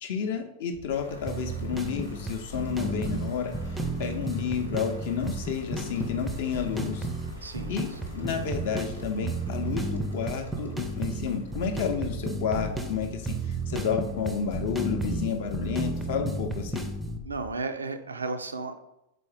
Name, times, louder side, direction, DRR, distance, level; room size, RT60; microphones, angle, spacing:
voice 1, 0.0-7.1 7.7-7.9 8.1-16.8, left 6 dB, 55° left, 5 dB, 0.6 m, -31 dB
sound 1, 0.7-17.5, left 2 dB, 20° left, 0.8 m, -47 dB
sound 2, 0.9-14.4, equal, 90° left, 0.8 m, -52 dB
sound 3, 1.3-17.2, right 2 dB, 5° right, 0.5 m, -33 dB
voice 2, 7.4-8.0 17.2-18.8, right 3 dB, 75° right, 8 dB, 0.3 m, -34 dB
3.9 x 3.5 x 3.3 m, 0.87 s
figure-of-eight pair, 90°, 0 cm